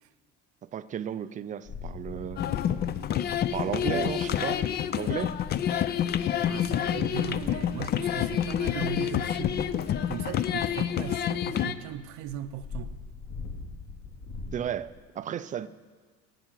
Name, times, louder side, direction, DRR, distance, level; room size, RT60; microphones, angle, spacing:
voice 1, 0.6-2.4 3.5-4.6 4.9-5.4 14.5-15.7, right 9 dB, 25° right, 0.4 m, -33 dB
sound 1, 1.6-4.8 5.0-14.6, left 4 dB, 65° left, 3.1 m, -43 dB
sound 2, 2.4-11.7, left 9 dB, 35° left, 0.4 m, -28 dB
voice 2, 6.4-9.6 10.1-12.9, right 10 dB, 70° right, 0.8 m, -38 dB
15.5 x 7.9 x 9.0 m
cardioid pair, 145°, 30 cm